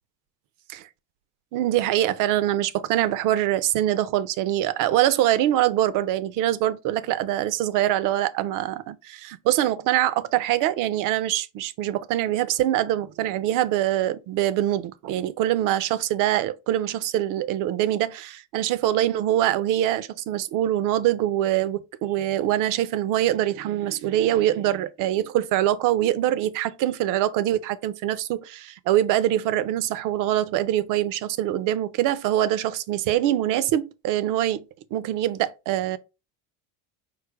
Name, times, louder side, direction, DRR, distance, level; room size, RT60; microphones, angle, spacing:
voice 1, 1.5-34.6 34.9-36.0, right 13 dB, 55° right, 0.5 m, -24 dB
4.7 x 2.1 x 4.5 m
cardioid pair, 130°, 38 cm